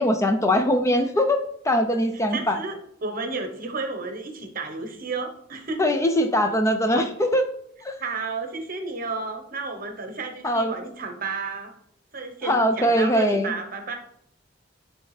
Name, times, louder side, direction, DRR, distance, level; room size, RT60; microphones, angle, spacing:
voice 1, 0.0-2.6 5.8-7.5 7.8-7.9 10.4-10.7 12.5-13.5, equal, 15° left, 6 dB, 0.4 m, -21 dB
voice 2, 2.1-5.9 8.0-11.7 12.1-13.9, right 3 dB, 50° right, 4 dB, 0.9 m, -32 dB
9.8 x 3.3 x 3.2 m, 0.69 s
head